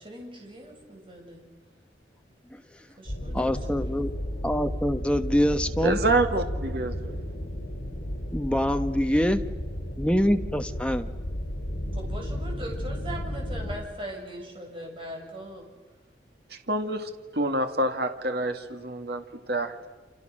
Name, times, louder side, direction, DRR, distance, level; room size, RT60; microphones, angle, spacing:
voice 1, 0.0-1.5 3.0-4.1 11.9-15.7, right 1 dB, 30° right, 0 dB, 7.1 m, -40 dB
sound 1, 3.1-13.8, equal, 60° left, 7.5 m, -33 dB
voice 2, 3.3-4.1 4.4-6.0 8.3-9.4 10.0-11.1, equal, 5° left, 7 dB, 1.2 m, -25 dB
voice 3, 5.8-7.1 16.5-19.9, right 2 dB, 55° right, 6 dB, 2.2 m, -27 dB
29.0 x 27.5 x 6.5 m, 1.3 s
head